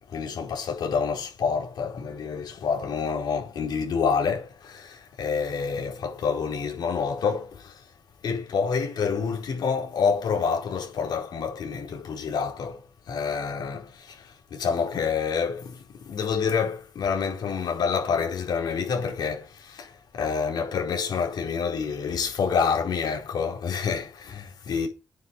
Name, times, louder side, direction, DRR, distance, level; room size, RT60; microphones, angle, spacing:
voice 1, 0.1-7.9 8.2-12.8 13.1-24.9, left 6 dB, 85° left, 4.6 m, -28 dB
9.4 x 6.7 x 7.1 m
wide cardioid pair, 115°, 7 cm